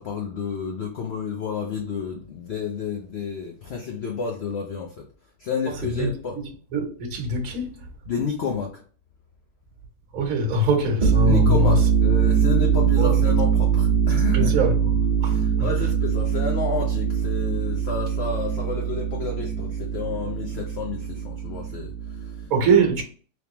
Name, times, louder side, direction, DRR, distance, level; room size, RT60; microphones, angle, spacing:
voice 1, 0.0-5.0 5.4-6.4 8.1-8.7 11.2-14.5 15.3-22.4, left 5 dB, 75° left, 0.5 m, -30 dB
voice 2, 5.9-7.9 10.1-11.8 13.0-13.2 14.1-14.9 15.2-15.7 22.5-23.0, right 1 dB, 60° right, 1.2 m, -23 dB
sound 1, 10.9-22.4, right 7 dB, 35° right, 0.7 m, -22 dB
3.4 x 3.0 x 2.8 m
omnidirectional pair, 1.8 m